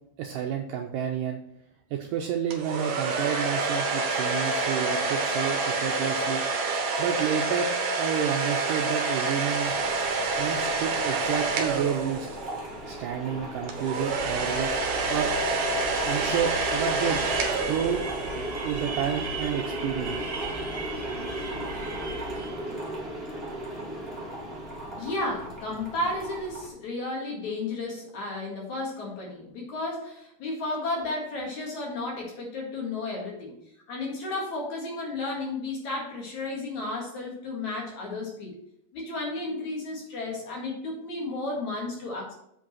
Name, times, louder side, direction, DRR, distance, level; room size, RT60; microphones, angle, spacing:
voice 1, 0.2-1.4 1.9-6.4 7.0-7.7 8.0-9.8 10.4-12.3 12.9-14.8 15.1-15.3 16.1-17.2 17.6-18.0 18.6-20.2, right 8 dB, 80° right, 2 dB, 1.9 m, -30 dB
sound 1, 2.5-12.6 13.7-18.4, right 3 dB, 60° right, 2.0 m, -28 dB
sound 2, 9.6-26.7, right 1 dB, 25° right, 1.2 m, -36 dB
sound 3, 14.1-22.7, right 2 dB, 45° right, 2.7 m, -37 dB
voice 2, 24.9-33.5 33.9-38.5 38.9-42.3, left 2 dB, 55° left, -1 dB, 2.9 m, -33 dB
7.9 x 5.2 x 5.5 m, 0.74 s
omnidirectional pair, 4.4 m